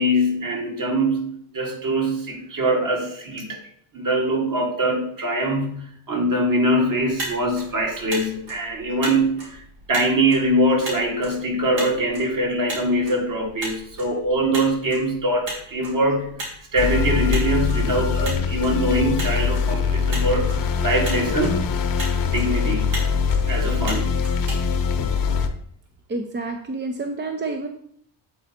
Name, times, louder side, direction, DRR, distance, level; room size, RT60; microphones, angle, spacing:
voice 1, 0.0-3.6 3.9-9.6 9.9-16.4 16.7-20.5 20.8-21.7 22.2-22.9 23.4-24.2, right 1 dB, 45° right, 1 dB, 2.1 m, -23 dB
Motor vehicle (road), 7.0-25.5, right 1 dB, 75° right, 3.0 m, -37 dB
sound 1, 16.8-25.5, left 6 dB, 50° left, 0.9 m, -23 dB
voice 2, 26.1-27.7, right 3 dB, 25° right, 5 dB, 0.6 m, -28 dB
8.1 x 4.1 x 4.3 m, 0.66 s
cardioid pair, 90°, 45 cm